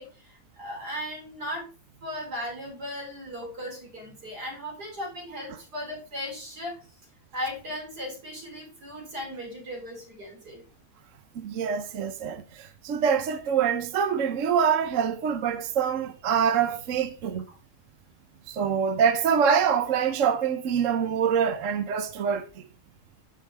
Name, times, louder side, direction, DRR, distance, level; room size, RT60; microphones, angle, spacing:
voice 1, 0.0-1.7 2.0-6.8 7.3-10.6, left 1 dB, 85° right, 4.3 m, -37 dB
voice 2, 11.4-17.4 18.5-22.5, right 7 dB, 60° right, 1.1 m, -25 dB
9.6 x 6.0 x 4.6 m
omnidirectional pair, 1.7 m